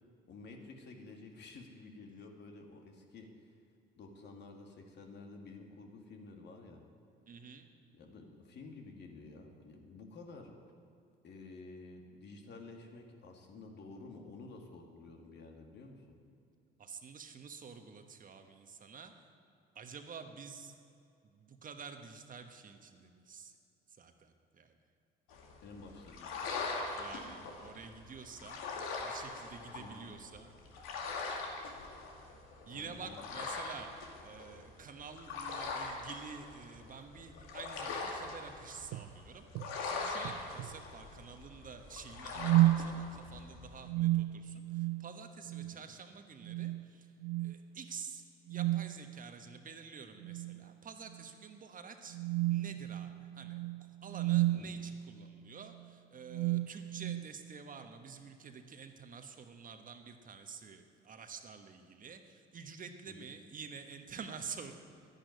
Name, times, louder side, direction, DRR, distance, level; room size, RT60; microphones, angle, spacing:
voice 1, 0.3-3.6 4.0-6.8 7.9-10.6 11.2-16.2 25.6-26.4 29.8-30.1 32.7-33.3 45.8-45.9 54.5-54.7 63.1-63.3, left 3 dB, 55° left, 3 dB, 2.3 m, -51 dB
voice 2, 7.3-7.7 16.8-19.1 19.7-20.7 21.2-23.5 23.9-24.8 26.8-28.7 29.0-30.5 32.6-33.9 34.2-39.5 39.8-47.1 47.4-48.2 48.5-52.2 52.5-64.7, right 5 dB, 40° right, 6 dB, 1.3 m, -49 dB
sound 1, 25.3-43.9, left 4 dB, 85° left, 2.2 m, -42 dB
sound 2, 38.9-39.1 39.5-39.7 40.2-40.7 42.4-42.9 43.8-45.1 45.5-45.7 46.4-46.9 47.2-47.5 48.5-49.0 50.2-50.7 51.1-51.2 52.1-54.7 55.6-55.8 56.3-57.3, right 16 dB, 80° right, 0.5 m, -32 dB
11.5 x 10.5 x 9.4 m, 2.5 s
cardioid pair, 95°, 21 cm